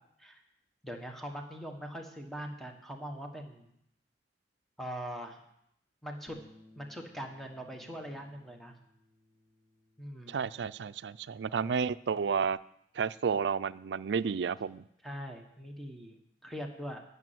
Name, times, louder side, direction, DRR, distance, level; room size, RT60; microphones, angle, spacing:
voice 1, 0.8-3.7 4.8-5.4 6.0-6.4 6.8-8.7 10.0-10.4 15.0-16.2 16.4-17.0, equal, ahead, 2 dB, 1.3 m, -42 dB
Bass guitar, 6.3-12.5, left 2 dB, 25° left, 2.9 m, -63 dB
voice 2, 10.3-12.6 13.0-14.8, right 6 dB, 75° right, 16 dB, 0.4 m, -31 dB
10.5 x 6.7 x 9.3 m, 0.75 s
head